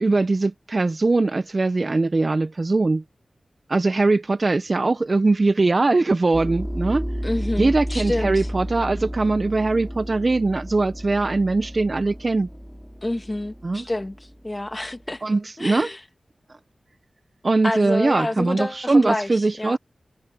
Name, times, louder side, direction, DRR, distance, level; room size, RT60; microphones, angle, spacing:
voice 1, 0.0-3.0 3.7-7.1 7.6-12.5 13.6-13.9 15.2-15.9 17.4-19.8, right 3 dB, 45° right, 0.4 m, -21 dB
sound 1, 6.3-15.0, equal, ahead, 1.1 m, -32 dB
voice 2, 7.2-8.5 13.0-14.2 14.4-15.2 15.6-16.0 17.6-19.8, left 1 dB, 25° left, 1.4 m, -28 dB
wide cardioid pair, 70°, 0 cm